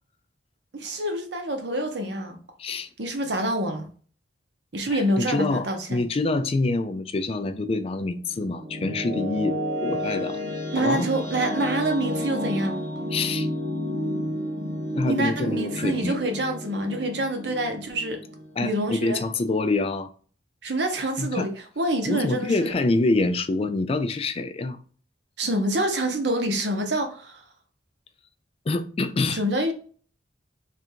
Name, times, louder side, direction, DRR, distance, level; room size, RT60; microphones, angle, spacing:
voice 1, 0.7-2.4 3.0-3.9 4.7-6.0 10.7-12.8 15.1-18.2 18.6-19.2 20.6-21.5 21.8-22.7 25.4-27.4 29.3-29.7, right 1 dB, 65° right, 0.8 m, -26 dB
voice 2, 4.9-9.6 9.8-10.4 10.8-11.1 13.1-13.5 14.9-16.1 18.6-20.1 21.2-21.5 22.1-24.8 28.7-29.4, left 2 dB, 30° left, 0.3 m, -26 dB
sound 1, 8.1-19.1, equal, 90° right, 1.6 m, -31 dB
3.4 x 2.5 x 4.4 m
head